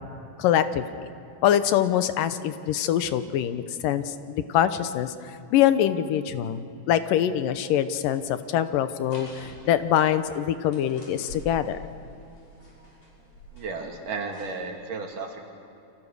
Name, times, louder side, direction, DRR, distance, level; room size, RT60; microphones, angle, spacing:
voice 1, 0.4-0.9 1.4-11.8, left 10 dB, 90° left, 11 dB, 2.6 m, -24 dB
sound 1, 9.0-14.7, equal, 55° left, 7.5 m, -47 dB
voice 2, 13.5-15.4, right 4 dB, 70° right, 2 dB, 4.1 m, -33 dB
29.0 x 25.0 x 6.7 m, 2.6 s
omnidirectional pair, 3.8 m